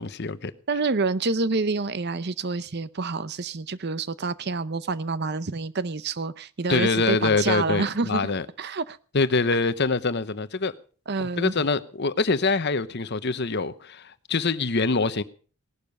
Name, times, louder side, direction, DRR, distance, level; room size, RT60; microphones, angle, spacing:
voice 1, 0.0-0.5 6.7-8.5 9.1-10.7 11.2-15.2, left 3 dB, 50° left, 0.9 m, -24 dB
voice 2, 0.7-8.2 8.6-9.0 11.1-11.5, right 3 dB, 50° right, 0.7 m, -27 dB
18.0 x 12.0 x 5.4 m
head